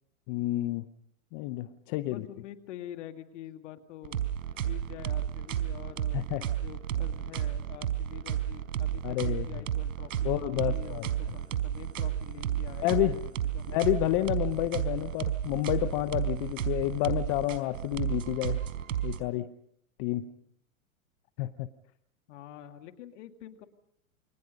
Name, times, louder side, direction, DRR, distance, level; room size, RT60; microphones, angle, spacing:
voice 1, 0.3-0.9 1.3-2.3 6.1-6.4 9.0-9.6 10.2-11.1 12.8-13.2 13.7-18.6 19.0-19.5 20.0-20.3 21.4-21.7, left 16 dB, 35° left, 11 dB, 0.8 m, -30 dB
voice 2, 2.1-4.3 4.5-13.2 13.5-13.7 20.2-20.4 22.3-23.7, left 11 dB, 55° left, 8 dB, 2.2 m, -46 dB
sound 1, 4.0-19.2, right 10 dB, 65° right, 4.3 m, -32 dB
29.0 x 23.0 x 5.3 m, 0.72 s
hypercardioid pair, 130°, 42 cm